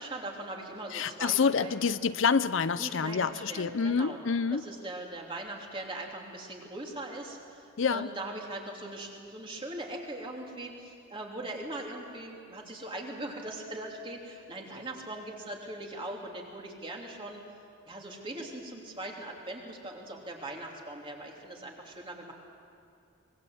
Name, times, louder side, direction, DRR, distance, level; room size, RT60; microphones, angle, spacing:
voice 1, 0.0-1.8 2.8-4.2 4.5-17.4 17.9-22.3, right 1 dB, 25° right, 0 dB, 3.1 m, -40 dB
voice 2, 0.9-4.6 7.8-8.1, left 5 dB, 65° left, 14 dB, 0.6 m, -27 dB
24.5 x 21.0 x 7.9 m, 2.3 s
head